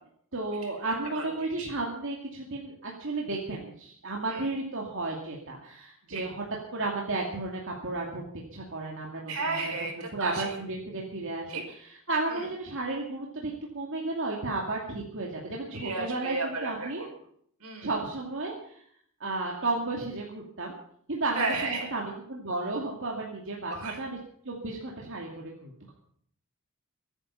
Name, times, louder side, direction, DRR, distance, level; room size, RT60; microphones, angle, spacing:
voice 1, 0.3-6.4 6.7-9.7 10.1-11.5 12.1-17.0 17.8-18.7 19.2-20.7 21.1-24.2 24.4-25.7, right 2 dB, 60° right, -2 dB, 2.6 m, -33 dB
voice 2, 1.1-1.7 4.3-4.5 6.1-6.2 9.3-10.6 11.5-11.6 12.3-12.5 15.7-17.1 17.6-17.9 21.4-21.9 23.8-24.0, right 3 dB, 80° right, 3 dB, 5.4 m, -33 dB
23.0 x 9.9 x 5.6 m, 0.64 s
head